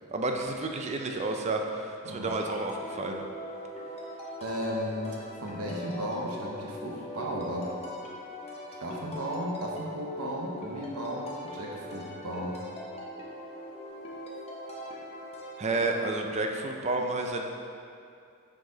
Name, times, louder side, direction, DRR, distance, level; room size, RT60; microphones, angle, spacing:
voice 1, 0.1-3.2 15.6-17.4, right 2 dB, 30° right, 3 dB, 0.5 m, -30 dB
sound 1, 2.3-16.0, left 1 dB, 30° left, 0.9 m, -41 dB
voice 2, 4.4-7.8 8.8-12.6, equal, 80° right, -2 dB, 1.0 m, -35 dB
6.3 x 4.9 x 3.9 m, 2.4 s
head